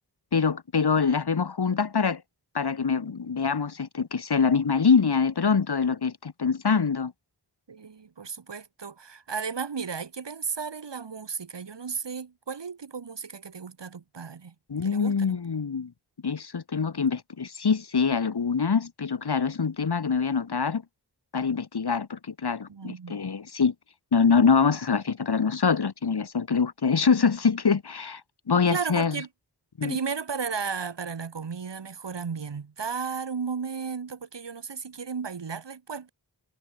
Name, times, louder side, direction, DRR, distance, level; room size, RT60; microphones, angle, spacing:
voice 1, 0.3-2.2 2.5-7.1 14.7-15.9 16.2-20.8 21.3-23.7 24.1-28.2 28.5-29.2 29.8-30.0, left 5 dB, 70° left, 2.2 m, -24 dB
voice 2, 7.7-14.5 14.8-15.4 22.7-23.2 28.7-29.3 29.8-36.1, right 5 dB, 85° right, 4.1 m, -34 dB
cardioid pair, 50°, 41 cm